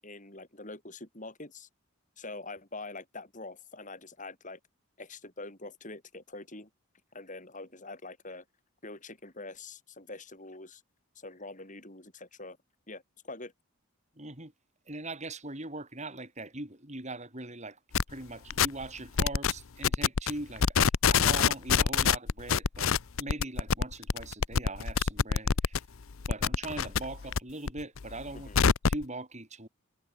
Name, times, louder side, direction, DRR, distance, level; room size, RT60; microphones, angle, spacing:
voice 1, 0.0-1.7 2.2-4.6 5.0-6.7 7.1-8.4 8.8-10.8 11.2-12.6 12.9-13.5 28.3-28.6, left 2 dB, 35° left, 7.3 m, -44 dB
voice 2, 14.2-14.5 14.9-17.8 18.1-25.8 26.3-29.7, right 2 dB, 30° right, 6.3 m, -41 dB
sound 1, 17.9-18.1 18.5-18.9 19.2-19.5 19.8-20.3 20.6-25.8 26.1-27.4 27.7-29.0, left 6 dB, 70° left, 0.7 m, -25 dB
head